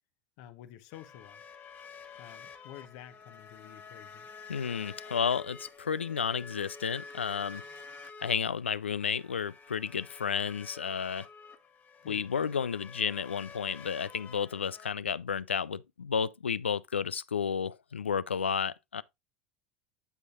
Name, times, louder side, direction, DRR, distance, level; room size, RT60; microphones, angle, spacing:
voice 1, 0.4-1.4 2.2-4.3 12.0-12.3, left 12 dB, 60° left, 1.0 m, -50 dB
sound 1, 0.9-14.9, left 5 dB, 30° left, 1.4 m, -49 dB
voice 2, 4.5-7.6 8.2-11.3 12.1-19.0, left 6 dB, 85° left, 0.4 m, -32 dB
8.1 x 7.9 x 2.4 m
figure-of-eight pair, 75°, 6 cm